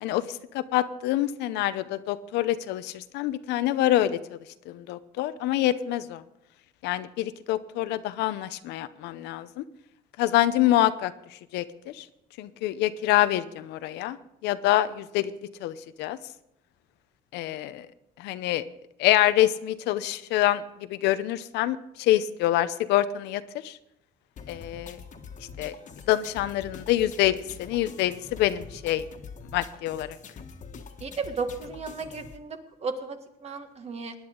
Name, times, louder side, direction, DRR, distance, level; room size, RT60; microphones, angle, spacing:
voice 1, 0.0-4.4 4.7-6.2 6.8-9.6 10.2-12.1 12.4-14.2 14.4-15.3 15.6-16.2 17.3-17.9 18.2-18.6 19.0-23.8 24.5-25.0 25.6-25.7 26.1-29.0 29.5-30.2, left 14 dB, 90° left, 13 dB, 0.7 m, -26 dB
sound 1, 24.4-32.4, left 5 dB, 45° left, 1.5 m, -45 dB
voice 2, 31.0-34.1, right 4 dB, 40° right, 6 dB, 1.7 m, -34 dB
19.5 x 10.5 x 3.8 m, 0.85 s
cardioid pair, 110°, 17 cm